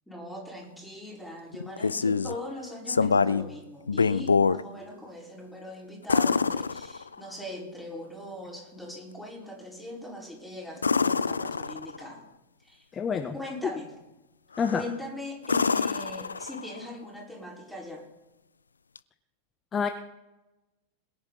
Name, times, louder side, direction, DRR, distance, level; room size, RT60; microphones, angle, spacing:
voice 1, 0.1-12.2 12.6-12.9 13.3-13.9 14.7-18.1, left 1 dB, ahead, -3 dB, 4.5 m, -40 dB
sound 1, 1.5-2.4 2.9-3.5 3.9-4.6 6.1-7.3 10.8-12.1 14.6-14.9 15.4-16.8 19.0-19.1, left 5 dB, 75° left, 0.4 m, -26 dB
voice 2, 12.9-13.3 14.6-14.8 19.7-19.9, left 6 dB, 20° left, 9 dB, 0.8 m, -27 dB
21.5 x 10.5 x 4.0 m, 1.0 s
figure-of-eight pair, 90°, 0 cm